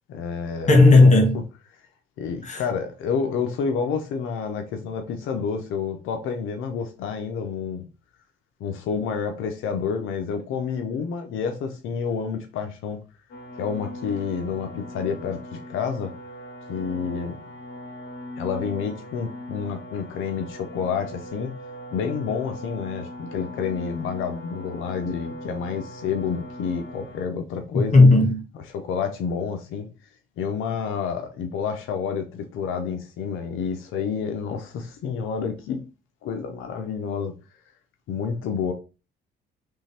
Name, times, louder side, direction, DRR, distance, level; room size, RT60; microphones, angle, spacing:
voice 1, 0.1-1.2 2.2-7.8 8.6-13.0 13.6-16.1 16.7-17.4 18.4-21.5 21.9-28.0 28.7-29.9 30.4-35.8 36.2-37.3 38.1-38.7, left 6 dB, 90° left, 0.7 m, -29 dB
voice 2, 0.7-1.4 2.4-2.6 27.9-28.4, left 2 dB, 35° left, 1.8 m, -13 dB
sound 1, 13.3-27.3, equal, 70° left, 2.0 m, -40 dB
3.7 x 3.2 x 4.2 m
cardioid pair, 90°, 20 cm